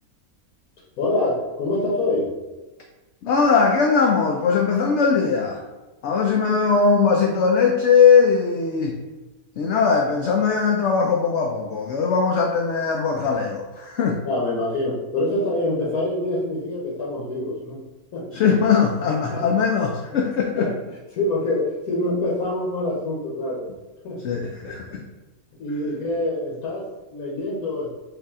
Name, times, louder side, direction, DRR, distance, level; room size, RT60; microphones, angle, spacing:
voice 1, 1.0-2.4 14.2-17.8 18.1-18.3 19.3-19.5 20.6-23.7 24.0-24.2 25.5-27.9, left 2 dB, 85° left, -4 dB, 1.4 m, -25 dB
voice 2, 3.2-5.6 6.0-9.0 9.6-14.2 18.3-20.7 24.2-25.0, left 5 dB, 65° left, 1 dB, 0.7 m, -20 dB
4.7 x 2.8 x 3.6 m, 1.1 s
omnidirectional pair, 1.5 m